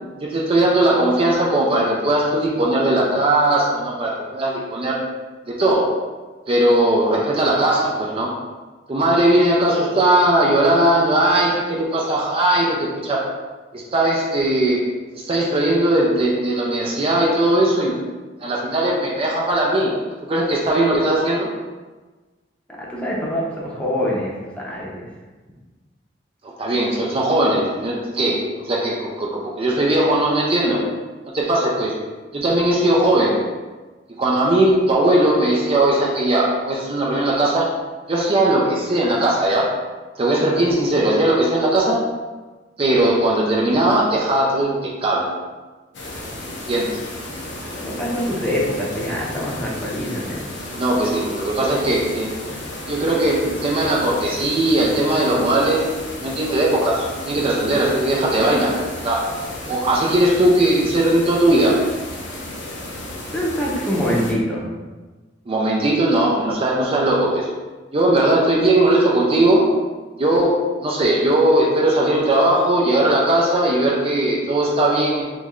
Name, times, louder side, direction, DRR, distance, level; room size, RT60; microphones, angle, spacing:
voice 1, 0.2-5.0 5.5-5.9 6.5-8.3 8.9-13.3 13.7-14.8 15.1-18.0 18.4-19.9 20.3-21.5 26.4-30.8 31.3-31.9 32.3-33.4 34.2-37.7 38.1-39.7 40.2-42.1 42.8-45.3 46.7-47.0 50.8-52.3 52.9-55.9 56.2-59.3 59.7-61.8 65.5-67.5 67.9-69.8 70.2-75.3, right 1 dB, 30° right, -3 dB, 0.4 m, -19 dB
voice 2, 22.8-25.1 47.8-50.4 63.3-64.7, equal, 5° left, -5 dB, 0.7 m, -24 dB
sound 1, 45.9-64.3, left 1 dB, 80° left, 0.7 m, -33 dB
3.1 x 3.1 x 3.7 m, 1.3 s
head